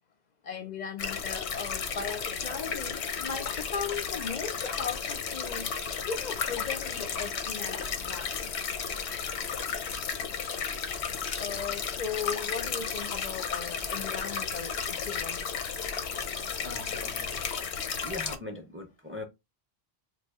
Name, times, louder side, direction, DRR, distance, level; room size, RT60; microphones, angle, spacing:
voice 1, 0.4-5.7 6.1-8.5 11.4-15.5 17.9-18.0, left 6 dB, 50° left, 0.6 m, -37 dB
sound 1, 1.0-18.4, left 6 dB, 85° left, 0.9 m, -33 dB
voice 2, 16.6-17.4 18.0-19.2, left 2 dB, 15° right, 0.5 m, -41 dB
3.4 x 2.3 x 3.4 m
omnidirectional pair, 1.1 m